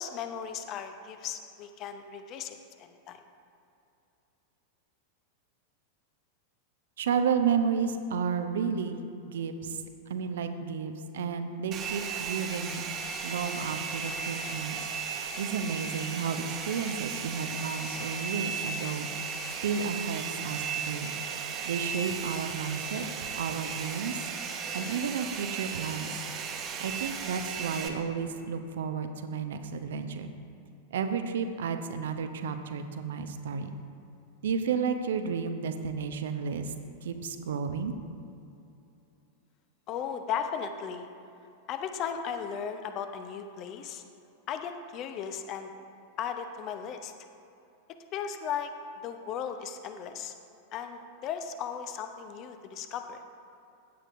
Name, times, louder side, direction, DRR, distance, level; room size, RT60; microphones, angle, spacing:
voice 1, 0.0-3.2 39.9-41.1 41.7-44.0 44.5-45.7 46.2-47.1 48.1-48.7 49.0-50.3 50.7-53.2, left 7 dB, 35° left, 7 dB, 0.8 m, -36 dB
voice 2, 7.0-9.8 10.1-12.8 13.2-14.8 15.4-19.1 19.6-21.1 21.6-24.2 24.7-26.1 26.8-30.3 30.9-33.7 34.4-36.7 37.0-37.9, right 6 dB, 60° right, 8 dB, 0.7 m, -32 dB
Domestic sounds home sounds, 11.7-27.9, right 6 dB, 30° right, 1.0 m, -36 dB
15.5 x 8.9 x 2.6 m, 2.7 s
figure-of-eight pair, 90°, 0 cm